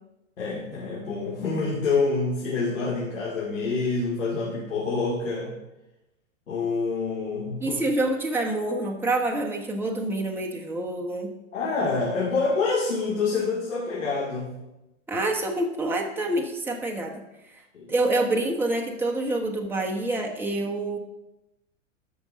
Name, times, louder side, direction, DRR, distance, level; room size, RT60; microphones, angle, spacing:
voice 1, 0.4-5.5 6.5-7.8 11.5-14.5 17.7-17.9, left 4 dB, 80° left, -5 dB, 2.6 m, -27 dB
voice 2, 7.6-11.3 15.1-17.2 17.5-17.6 17.9-21.0, right 2 dB, 5° right, 0 dB, 1.3 m, -27 dB
13.5 x 5.4 x 5.2 m, 0.95 s
hypercardioid pair, 110°, 38 cm